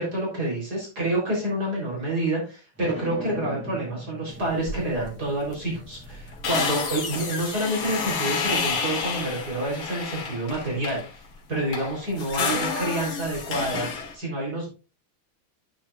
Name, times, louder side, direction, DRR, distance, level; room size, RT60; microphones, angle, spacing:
voice 1, 0.0-11.2 11.5-14.7, right 1 dB, 45° right, -3 dB, 4.4 m, -28 dB
sound 1, 2.8-8.0, left 1 dB, 5° right, 2.7 m, -42 dB
sound 2, 4.7-5.1 5.4-5.6 5.9-11.1 11.5-14.2, left 5 dB, 65° left, 2.2 m, -30 dB
9.2 x 8.9 x 2.5 m, 0.32 s
omnidirectional pair, 2.4 m